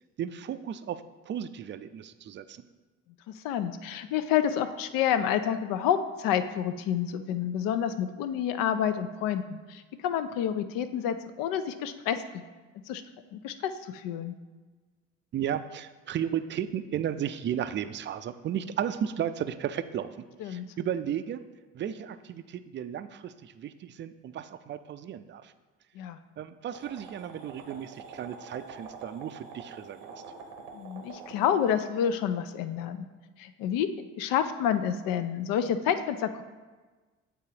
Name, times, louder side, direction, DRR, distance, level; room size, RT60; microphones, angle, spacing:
voice 1, 0.2-2.6 15.3-20.2 20.4-21.4 21.7-25.5 26.4-30.2, right 9 dB, 30° right, 11 dB, 0.4 m, -34 dB
voice 2, 3.3-12.4 12.9-13.0 13.3-14.3 20.4-20.6 25.9-26.2 30.7-33.1 33.4-33.9 34.2-36.4, left 9 dB, 65° left, 11 dB, 0.6 m, -29 dB
sound 1, 26.7-31.8, right 5 dB, 85° right, 0.9 m, -46 dB
8.9 x 3.7 x 2.8 m, 1.3 s
hypercardioid pair, 55°, 37 cm